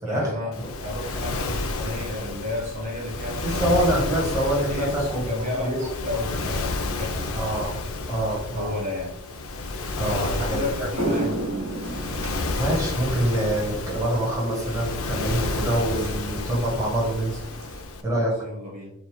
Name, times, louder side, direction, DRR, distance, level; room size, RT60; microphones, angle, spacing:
voice 1, 0.0-0.5 0.8-3.8 4.7-7.5 8.5-9.1 10.0-11.3 18.1-18.9, left 2 dB, 40° right, -3 dB, 1.1 m, -32 dB
Waves surf, 0.5-18.0, left 2 dB, 65° left, 0.6 m, -31 dB
voice 2, 3.4-5.8 7.3-7.8 8.1-8.7 10.0-10.9 12.6-17.4 18.0-18.3, right 1 dB, 15° right, -5 dB, 1.8 m, -25 dB
sound 1, 9.6-9.7 10.2-10.4 10.7-17.8, right 2 dB, 65° right, 1.7 m, -34 dB
7.0 x 3.4 x 2.2 m, 0.81 s
head